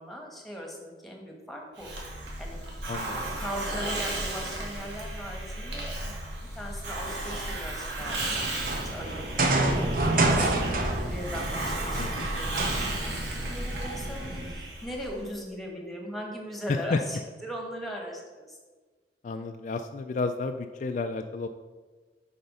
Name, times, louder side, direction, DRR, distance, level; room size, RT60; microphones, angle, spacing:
voice 1, 0.0-1.9 2.4-2.6 3.4-6.1 6.5-8.2 8.7-9.9 10.2-18.6, equal, ahead, 0 dB, 1.3 m, -39 dB
Hiss, 1.8-15.3, right 1 dB, 80° right, 1.7 m, -34 dB
sound 1, 8.2-14.5, right 2 dB, 50° right, 0.9 m, -29 dB
voice 2, 16.7-17.0 19.2-21.5, left 3 dB, 45° left, 6 dB, 0.3 m, -31 dB
7.8 x 4.3 x 5.5 m, 1.4 s
head